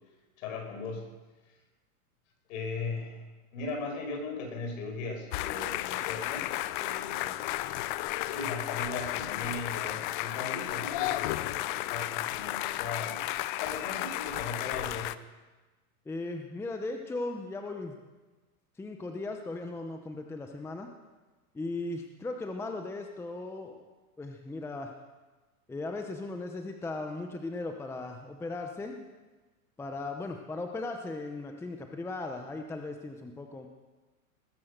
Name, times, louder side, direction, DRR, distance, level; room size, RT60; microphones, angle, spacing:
voice 1, 0.4-1.1 2.5-3.2 3.5-6.5 6.8-7.4 8.2-13.2 13.6-15.2, left 3 dB, 55° left, 3 dB, 5.4 m, -38 dB
sound 1, 5.3-15.1, left 16 dB, 35° left, 0.5 m, -33 dB
voice 2, 16.1-18.0 18.8-20.9 21.5-23.9 24.2-24.9 25.7-29.1 29.8-33.7, left 2 dB, 5° left, 4 dB, 0.8 m, -37 dB
20.0 x 10.5 x 6.6 m, 1.2 s
hypercardioid pair, 135°, 45 cm